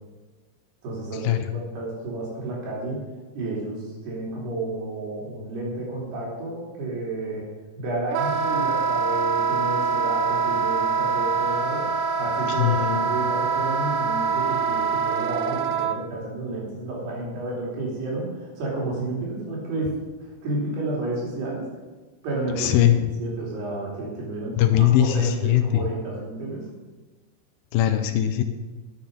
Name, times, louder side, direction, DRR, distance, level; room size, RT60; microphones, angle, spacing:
voice 1, 0.8-3.0 3.4-7.5 7.8-11.9 12.2-20.0 20.4-21.7 22.2-22.9 23.2-26.7, right 2 dB, 70° right, -4 dB, 5.1 m, -31 dB
Wind instrument woodwind instrument, 8.1-16.0, right 5 dB, 90° right, 2.0 m, -24 dB
voice 2, 12.5-13.2 22.6-23.1 24.6-25.8 27.7-28.4, left 11 dB, 85° left, 7 dB, 2.0 m, -20 dB
11.5 x 7.4 x 5.3 m, 1.3 s
omnidirectional pair, 4.9 m